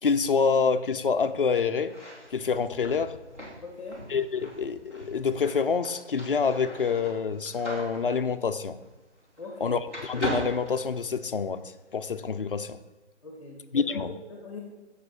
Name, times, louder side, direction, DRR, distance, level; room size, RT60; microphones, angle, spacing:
voice 1, 0.0-1.9 2.3-3.2 4.1-8.8 9.6-12.8 13.7-14.1, left 5 dB, 50° left, 9 dB, 0.6 m, -27 dB
sound 1, 1.8-9.6 9.9-11.5, right 1 dB, 10° right, 1.3 m, -39 dB
voice 2, 3.6-4.0 9.4-9.8 13.2-14.0 14.3-14.6, left 3 dB, 30° left, 0 dB, 1.5 m, -41 dB
7.1 x 6.8 x 5.2 m, 1.2 s
figure-of-eight pair, 165°, 34 cm